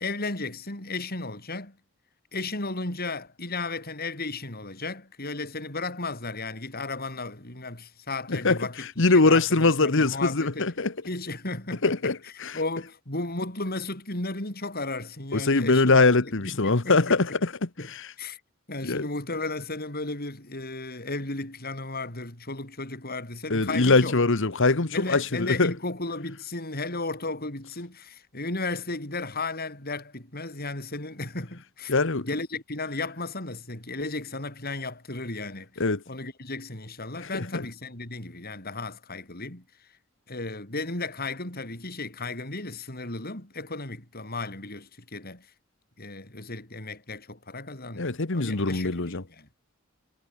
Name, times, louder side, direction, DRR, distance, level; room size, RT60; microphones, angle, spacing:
voice 1, 0.0-1.8 2.3-8.9 9.1-10.7 11.1-16.0 16.2-17.4 17.8-18.4 18.7-24.1 24.9-31.9 32.2-39.6 40.3-45.5 46.0-49.5, left 3 dB, 50° left, 6.8 m, -34 dB
voice 2, 9.0-10.9 11.8-12.2 12.4-12.5 15.3-17.7 18.8-19.1 23.5-25.7 31.9-32.3 35.8-36.0 37.3-37.6 48.0-49.2, left 3 dB, 65° left, 1.4 m, -22 dB
head